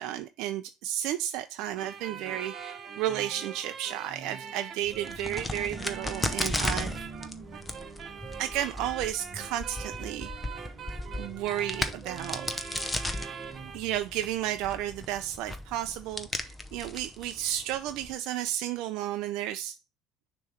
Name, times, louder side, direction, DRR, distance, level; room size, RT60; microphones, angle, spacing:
voice 1, 0.0-7.1 8.4-10.3 11.2-12.5 13.7-19.8, right 12 dB, 75° right, 0.4 m, -33 dB
sound 1, 1.8-13.8, right 6 dB, 40° right, 0.9 m, -42 dB
Crack, 4.9-18.1, left 2 dB, 10° left, 0.7 m, -36 dB
6.5 x 3.1 x 5.6 m
cardioid pair, 135°, 0 cm